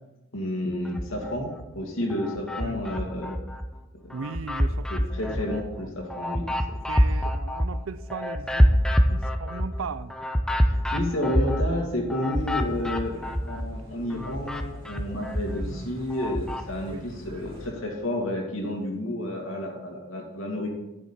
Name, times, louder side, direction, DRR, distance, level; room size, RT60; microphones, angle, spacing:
voice 1, 0.3-3.4 4.0-4.1 4.9-6.5 10.7-20.7, left 1 dB, 80° left, 0 dB, 2.3 m, -31 dB
sound 1, 0.8-1.7 2.1-3.7 4.1-13.8 14.1-16.7, equal, 5° left, 0.5 m, -26 dB
voice 2, 4.1-4.9 5.3-5.5 5.8-5.9 6.9-8.8 9.1-10.1 12.2-12.5 13.2-13.4 14.1-14.3 15.6-15.8 16.9-17.0, right 5 dB, 80° right, 15 dB, 0.5 m, -38 dB
sound 2, 12.3-17.7, equal, 25° right, 2.6 m, -45 dB
10.5 x 6.5 x 4.4 m, 0.96 s
head